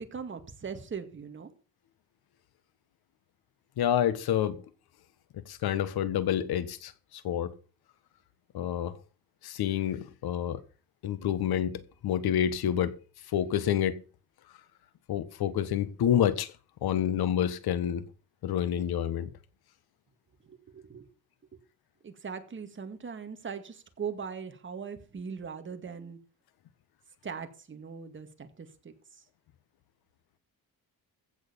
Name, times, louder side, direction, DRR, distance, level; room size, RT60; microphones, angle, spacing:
voice 1, 0.0-1.5 20.4-21.1 21.5-21.6 22.0-26.2 27.2-29.2, right 6 dB, 30° right, 2.1 m, -40 dB
voice 2, 3.8-4.6 5.4-7.5 8.5-9.0 9.4-10.6 11.0-12.9 13.3-14.0 15.1-16.5 16.8-18.1 18.4-19.3, left 10 dB, 85° left, 1.6 m, -28 dB
15.5 x 6.8 x 7.0 m
cardioid pair, 140°, 37 cm